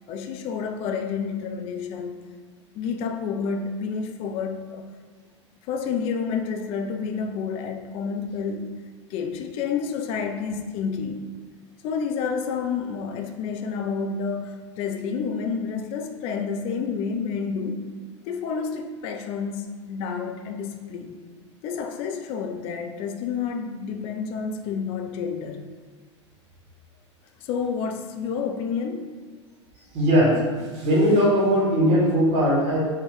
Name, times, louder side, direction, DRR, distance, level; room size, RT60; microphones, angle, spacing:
voice 1, 0.1-2.2 2.7-4.9 5.6-8.8 9.1-11.3 11.8-17.9 18.3-21.2 21.6-25.6 27.4-29.2, left 6 dB, 40° left, 5 dB, 0.4 m, -29 dB
voice 2, 29.9-30.4 30.7-32.8, equal, 45° right, -4 dB, 1.3 m, -19 dB
3.7 x 2.2 x 3.1 m, 1.5 s
figure-of-eight pair, 90°, 15 cm